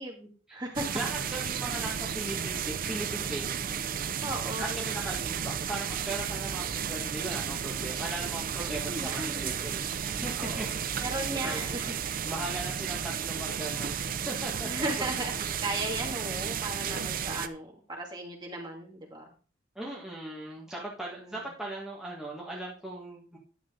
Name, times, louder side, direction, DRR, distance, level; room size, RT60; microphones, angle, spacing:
voice 1, 0.0-0.9 4.2-4.8 8.7-9.5 10.4-11.9 14.6-19.2 21.2-21.4, right 1 dB, 25° right, -1 dB, 2.3 m, -36 dB
sound 1, 0.8-17.5, right 7 dB, 50° right, 0.5 m, -33 dB
voice 2, 0.9-3.8 4.6-11.0 11.3-11.6 12.2-14.7 19.7-23.4, right 2 dB, 5° right, -5 dB, 1.6 m, -38 dB
10.5 x 7.2 x 3.8 m, 0.39 s
head